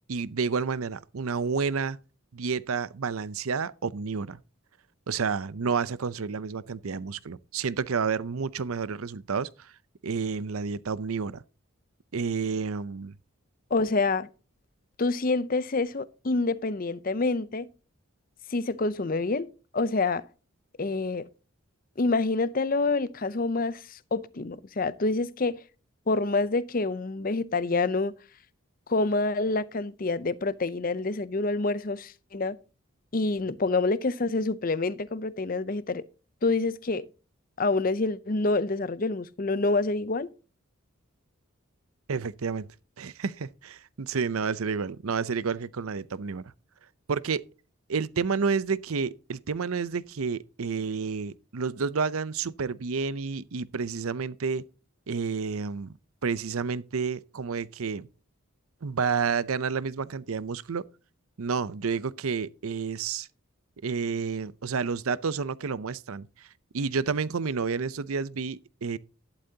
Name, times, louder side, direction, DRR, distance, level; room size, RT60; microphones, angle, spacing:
voice 1, 0.1-2.0 2.3-4.4 5.1-9.7 10.0-11.4 12.1-13.1 42.1-42.7 43.0-46.4 47.1-47.4 47.9-54.6 55.1-55.9 56.2-58.1 58.8-60.9 61.4-63.3 63.8-66.5 66.7-69.0, right 5 dB, 80° right, 0.6 m, -30 dB
voice 2, 13.7-14.3 15.0-17.7 18.5-20.2 20.8-21.3 22.0-25.6 26.1-28.1 28.9-32.6 33.1-36.0 36.4-37.1 37.6-40.3, left 3 dB, 40° left, 0.6 m, -27 dB
11.5 x 11.5 x 2.8 m
head